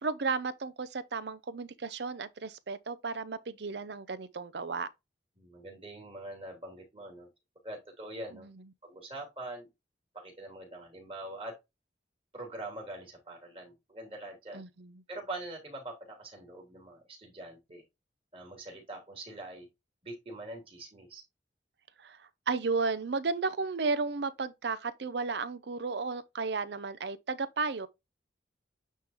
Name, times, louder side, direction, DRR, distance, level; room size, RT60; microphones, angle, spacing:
voice 1, 0.0-4.9 14.5-14.9 22.0-27.9, right 4 dB, 70° right, 0.6 m, -33 dB
voice 2, 5.4-7.3 7.6-8.5 8.8-9.7 10.1-11.5 12.3-14.6 15.1-17.8 18.3-19.7 20.0-21.2, right 2 dB, 30° right, 3.1 m, -43 dB
9.2 x 3.8 x 2.9 m
head